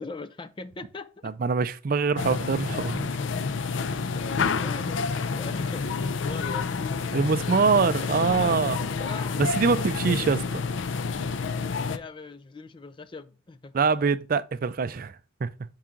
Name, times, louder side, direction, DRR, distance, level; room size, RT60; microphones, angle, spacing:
voice 1, 0.0-1.3 4.6-5.0 5.3-6.7 9.0-9.4 9.7-9.9 11.8-13.7, left 3 dB, 25° left, 0.4 m, -40 dB
voice 2, 1.2-3.1 7.1-8.9 9.4-10.6 13.7-15.2 15.4-15.5, right 5 dB, 50° right, 0.4 m, -24 dB
sound 1, 2.2-12.0, left 5 dB, 85° left, 0.5 m, -29 dB
5.9 x 4.7 x 3.7 m
head